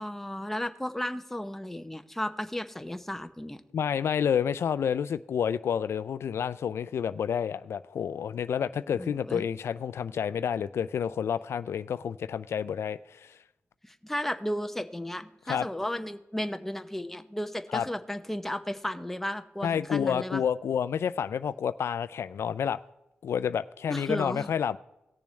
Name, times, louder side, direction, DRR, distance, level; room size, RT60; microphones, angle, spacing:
voice 1, 0.0-3.6 8.9-9.5 13.8-20.4 23.9-24.5, left 1 dB, 5° left, 0.7 m, -34 dB
voice 2, 3.7-13.4 15.5-15.7 17.7-17.8 19.6-22.8 23.2-24.8, left 8 dB, 85° left, 0.3 m, -29 dB
17.5 x 6.9 x 3.2 m
wide cardioid pair, 100°, 4 cm